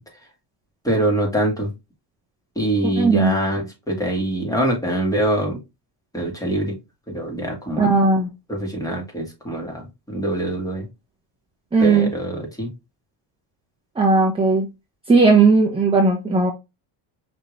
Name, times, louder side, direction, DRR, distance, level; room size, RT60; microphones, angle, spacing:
voice 1, 0.8-1.7 2.6-5.6 6.1-6.8 7.1-7.9 8.5-10.9 11.8-12.7, right 1 dB, 5° left, 2.3 m, -24 dB
voice 2, 3.0-3.3 7.8-8.3 11.7-12.1 14.0-14.7 15.1-16.5, right 4 dB, 10° right, 1.1 m, -16 dB
5.5 x 3.6 x 2.6 m
supercardioid pair, 105°, 50 cm